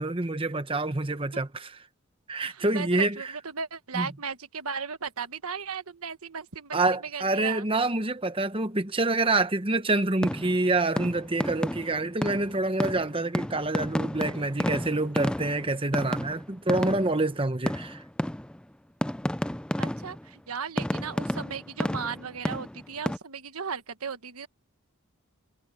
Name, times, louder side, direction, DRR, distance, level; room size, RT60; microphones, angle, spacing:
voice 1, 0.0-1.8 2.3-3.3 3.9-4.1 6.7-18.0, right 2 dB, 25° right, 1.1 m, -27 dB
voice 2, 2.5-7.7 19.8-24.5, right 6 dB, 80° right, 1.3 m, -36 dB
sound 1, 10.2-10.7 11.0-17.3 17.7-18.7 19.0-20.3 20.8-23.2, left 1 dB, 5° left, 0.3 m, -31 dB
head